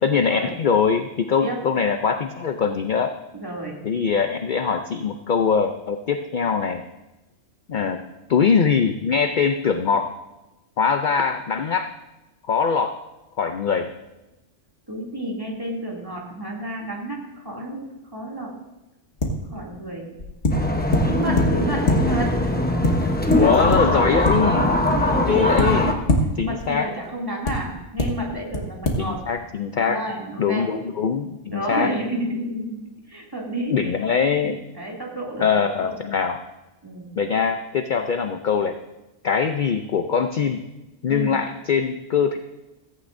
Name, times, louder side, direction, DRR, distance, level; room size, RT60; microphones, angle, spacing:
voice 1, 0.0-3.1 3.8-6.8 7.7-8.0 8.3-10.1 10.8-11.9 12.5-13.0 13.4-13.9 21.3-21.4 23.3-24.7 25.3-25.9 26.4-26.9 29.0-30.0 30.4-31.9 33.7-34.6 35.4-36.4 37.1-38.8 39.2-40.6 41.0-42.4, left 6 dB, 50° left, 7 dB, 0.6 m, -22 dB
voice 2, 3.3-3.8 14.9-18.5 19.5-20.1 21.1-22.3 23.4-23.9 24.8-25.9 26.4-29.2 29.7-30.7 31.5-32.8 33.1-35.5 35.8-36.0 36.8-37.1 41.1-41.4, right 1 dB, 20° right, -3 dB, 2.7 m, -31 dB
sound 1, 19.2-19.6 20.2-22.4 22.8-24.9 25.3-26.7 27.4-27.5 28.0-28.1 28.5-28.6 28.8-28.9, left 1 dB, 65° left, 1.8 m, -24 dB
sound 2, 20.5-25.9, left 1 dB, 10° left, 0.8 m, -21 dB
15.5 x 14.5 x 2.6 m, 1.0 s
omnidirectional pair, 1.2 m